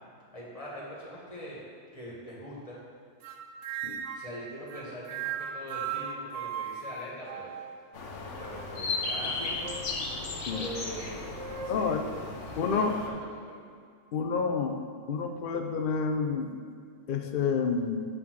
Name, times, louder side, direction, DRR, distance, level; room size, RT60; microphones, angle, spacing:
voice 1, 0.3-1.6 1.9-2.8 4.1-7.6 8.4-9.6 10.5-11.3 11.6-13.6, equal, 30° left, -5 dB, 1.7 m, -43 dB
sound 1, 3.2-4.3 4.7-7.9 8.3-9.0 9.6-10.0 10.5-10.7 11.4-11.7, right 7 dB, 80° right, 1.0 m, -38 dB
sound 2, 7.9-13.1, left 3 dB, 80° left, 1.2 m, -36 dB
voice 2, 11.7-12.0 12.6-12.9 14.1-14.8 15.1-16.6 17.1-18.1, left 5 dB, 55° left, 4 dB, 0.6 m, -29 dB
8.4 x 3.8 x 6.1 m, 2.2 s
omnidirectional pair, 1.2 m